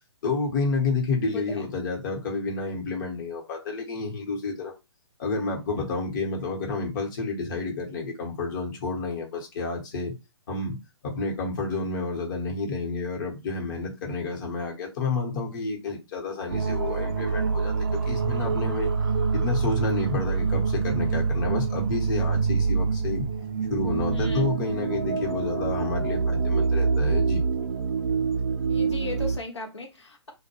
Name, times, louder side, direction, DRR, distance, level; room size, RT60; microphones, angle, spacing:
voice 1, 0.2-4.7 5.2-10.1 10.5-10.8 11.0-18.9 19.3-23.3 23.7-27.4, left 3 dB, 45° left, 1.0 m, -30 dB
voice 2, 1.3-1.7 24.1-24.5 28.7-30.3, left 2 dB, 90° left, 0.7 m, -37 dB
sound 1, 16.5-29.4, right 5 dB, 55° right, 0.4 m, -26 dB
2.2 x 2.2 x 2.9 m
figure-of-eight pair, 130°, 14 cm